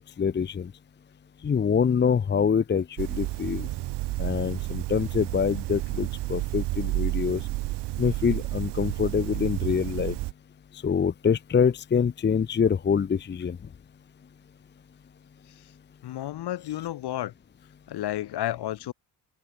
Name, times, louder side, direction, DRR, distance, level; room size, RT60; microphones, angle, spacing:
voice 1, 0.2-0.7 1.4-3.7 4.2-7.4 8.0-10.1 10.7-13.6, left 6 dB, 25° left, 0.8 m, -25 dB
sound 1, 3.0-10.3, right 18 dB, 80° right, 1.5 m, -31 dB
voice 2, 16.0-17.3 17.9-18.9, left 13 dB, 65° left, 3.3 m, -31 dB
cardioid pair, 90°, 41 cm